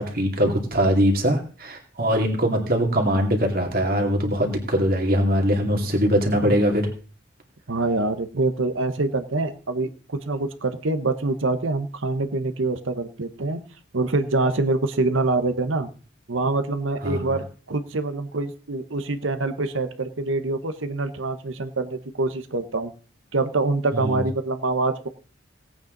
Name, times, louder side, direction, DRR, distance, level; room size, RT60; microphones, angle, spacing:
voice 1, 0.0-6.8 17.0-17.3 23.9-24.2, equal, 45° right, 2 dB, 2.5 m, -22 dB
voice 2, 7.7-13.6 13.9-15.9 16.3-22.9 23.3-25.1, right 3 dB, 80° right, 9 dB, 1.0 m, -25 dB
17.5 x 8.8 x 3.9 m, 0.39 s
head